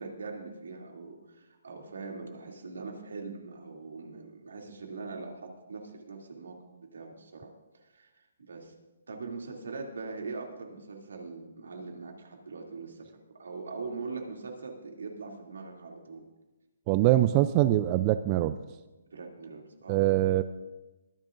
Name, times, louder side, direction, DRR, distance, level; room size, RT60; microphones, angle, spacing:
voice 1, 0.0-7.5 7.8-8.7 9.1-16.3 19.1-20.1, right 4 dB, 80° right, 1 dB, 2.7 m, -42 dB
voice 2, 16.9-18.6 19.9-20.4, right 14 dB, 30° right, 11 dB, 0.4 m, -23 dB
22.5 x 10.5 x 2.6 m, 1.1 s
hypercardioid pair, 150°, 0 cm